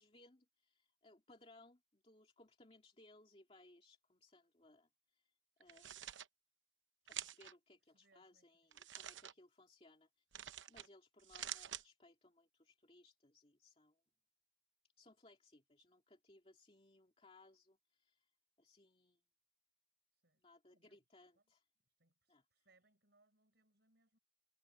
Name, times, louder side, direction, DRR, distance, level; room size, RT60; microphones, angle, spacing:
voice 1, 0.0-5.3 5.6-6.0 7.1-14.0 15.0-18.3 18.6-19.2 20.4-21.7 22.3-22.4, left 2 dB, 30° left, 2.6 m, -66 dB
sound 1, 5.6-6.3 7.1-7.5 8.7-9.3 10.3-10.9 11.2-11.8, right 11 dB, 80° right, 0.8 m, -48 dB
voice 2, 7.8-8.5 9.0-9.2 20.1-20.4 20.7-21.0 21.4-21.5 21.9-24.2, right 2 dB, 65° right, 5.6 m, -76 dB
head